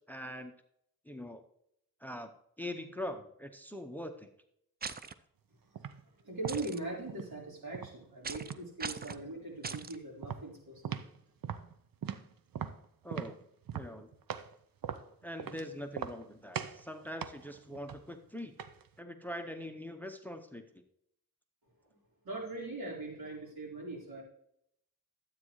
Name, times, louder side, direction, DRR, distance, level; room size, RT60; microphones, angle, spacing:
voice 1, 0.1-0.5 1.1-1.4 2.0-2.3 2.6-4.3 13.0-13.4 13.7-14.1 15.2-18.5 19.0-20.7, left 1 dB, 5° left, 7 dB, 0.7 m, -42 dB
sound 1, 4.8-5.1 6.5-6.8 8.2-8.5 8.8-9.2 9.6-10.0, right 5 dB, 25° right, 0.4 m, -40 dB
sound 2, 5.7-6.0 6.4-7.3 7.7-8.7 9.0-9.3 9.6-9.9 10.2-11.2 11.4-14.5 14.8-15.6 15.9-16.3 16.5-16.8 17.2-18.9, right 8 dB, 65° right, 0.7 m, -40 dB
voice 2, 6.0-11.0 22.2-24.2, right 2 dB, 85° right, -3 dB, 4.1 m, -41 dB
12.0 x 8.5 x 3.1 m, 0.72 s
wide cardioid pair, 110°, 36 cm